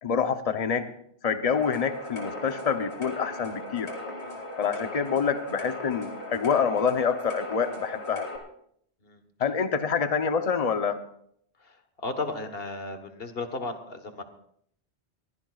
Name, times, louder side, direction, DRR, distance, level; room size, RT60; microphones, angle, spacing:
voice 1, 0.0-0.9 1.2-3.9 4.6-8.3 9.4-11.0, left 6 dB, 35° left, 8 dB, 0.9 m, -26 dB
sound 1, 1.5-8.4, left 1 dB, 85° left, 2.6 m, -38 dB
voice 2, 11.6-14.2, left 3 dB, 60° left, 8 dB, 1.6 m, -35 dB
22.0 x 15.5 x 2.4 m, 0.68 s
omnidirectional pair, 1.1 m